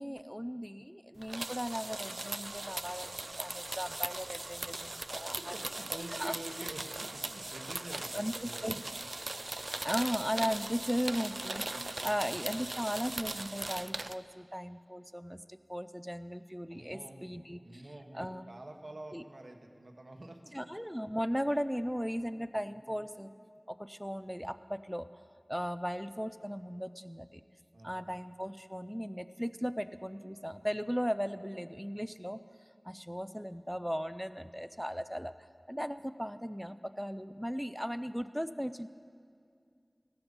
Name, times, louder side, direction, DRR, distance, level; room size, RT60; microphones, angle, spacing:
voice 1, 0.0-5.5 6.1-6.3 8.1-8.8 9.8-17.8 18.1-18.4 19.1-19.2 20.5-23.3 23.7-25.1 25.5-27.3 27.8-32.4 32.8-35.3 35.7-38.9, equal, ahead, 11 dB, 0.4 m, -37 dB
sound 1, 1.2-14.1, right 2 dB, 65° right, 0.4 m, -39 dB
voice 2, 5.4-9.0 11.7-12.1 12.6-12.8 16.7-17.2 17.6-20.5 27.7-28.1, right 1 dB, 85° right, 3 dB, 1.3 m, -48 dB
16.0 x 13.0 x 5.3 m, 2.2 s
wide cardioid pair, 45°, 0 cm